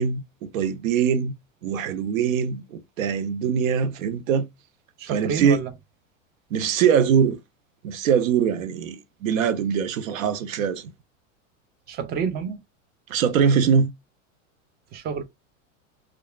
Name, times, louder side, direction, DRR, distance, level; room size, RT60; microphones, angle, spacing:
voice 1, 0.0-1.3 1.6-4.5 5.1-5.6 6.5-7.4 7.8-10.9 13.1-13.9, right 7 dB, 85° right, 0.6 m, -22 dB
voice 2, 5.0-5.7 11.9-12.6 14.9-15.2, right 7 dB, 25° right, 0.4 m, -29 dB
2.8 x 2.3 x 2.3 m
hypercardioid pair, 115°, 39 cm